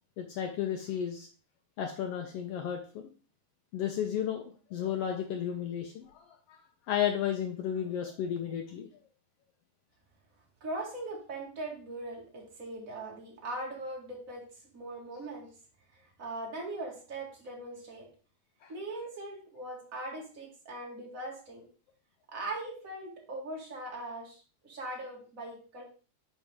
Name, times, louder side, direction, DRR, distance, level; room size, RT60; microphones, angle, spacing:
voice 1, 0.2-1.3 1.8-3.1 3.7-4.4 4.7-6.2 6.9-8.9 18.6-18.7, left 9 dB, 75° left, 4 dB, 1.4 m, -33 dB
voice 2, 10.6-14.4 14.7-15.5 16.2-18.1 18.7-21.6 22.3-25.8, right 2 dB, 30° right, -1 dB, 2.1 m, -40 dB
9.6 x 4.9 x 3.5 m, 0.38 s
omnidirectional pair, 3.6 m